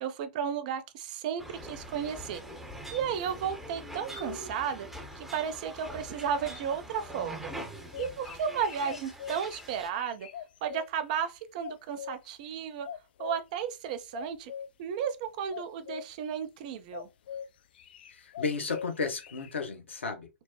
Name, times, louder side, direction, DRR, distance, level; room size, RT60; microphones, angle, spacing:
voice 1, 0.0-2.4 2.9-4.9 5.2-7.5 8.0-10.3 10.6-12.9 13.2-14.5 14.8-17.1, right 8 dB, 40° right, 0.4 m, -33 dB
sound 1, 1.4-9.9, equal, 5° right, 0.7 m, -43 dB
sound 2, 7.7-10.9 11.6-12.3 12.8-13.4 14.1-14.7 15.5-16.1 16.9-17.5 17.7-19.5, left 8 dB, 50° left, 0.3 m, -42 dB
voice 2, 18.1-20.3, left 4 dB, 65° left, 0.9 m, -33 dB
4.4 x 2.0 x 3.0 m
figure-of-eight pair, 110°, 7 cm